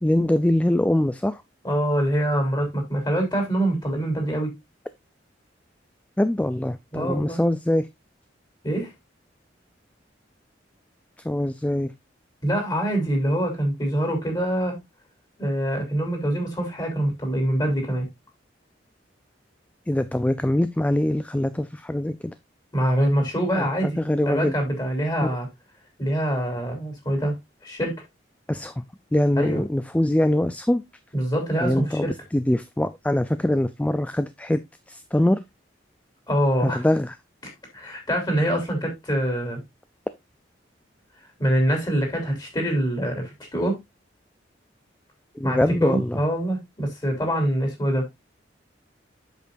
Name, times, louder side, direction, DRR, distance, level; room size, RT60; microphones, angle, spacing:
voice 1, 0.0-1.4 6.2-7.9 11.2-11.9 19.9-22.3 23.5-23.6 24.0-24.5 28.5-28.8 29.1-30.8 31.6-34.6 34.9-35.4 36.6-37.2 45.4-46.2, left 1 dB, 10° left, 0.3 m, -23 dB
voice 2, 1.6-4.5 6.9-7.4 8.6-8.9 12.4-14.8 15.4-18.1 22.7-24.0 24.2-25.5 26.0-27.3 27.6-28.0 29.4-29.6 31.1-32.1 36.3-36.9 37.7-39.6 41.4-43.8 45.4-48.1, right 1 dB, 25° left, 3.2 m, -24 dB
8.1 x 6.7 x 2.6 m
head